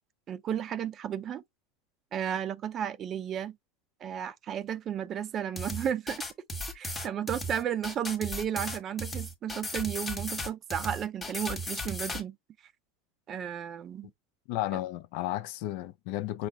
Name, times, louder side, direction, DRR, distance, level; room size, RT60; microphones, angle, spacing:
voice 1, 0.3-1.4 2.1-3.6 4.0-6.2 6.7-12.4 13.3-14.1, right 9 dB, 30° right, 0.5 m, -33 dB
sound 1, 5.6-12.2, equal, 10° left, 1.2 m, -36 dB
voice 2, 14.5-16.5, left 14 dB, 60° left, 0.5 m, -33 dB
5.9 x 2.0 x 3.8 m
supercardioid pair, 135°, 0 cm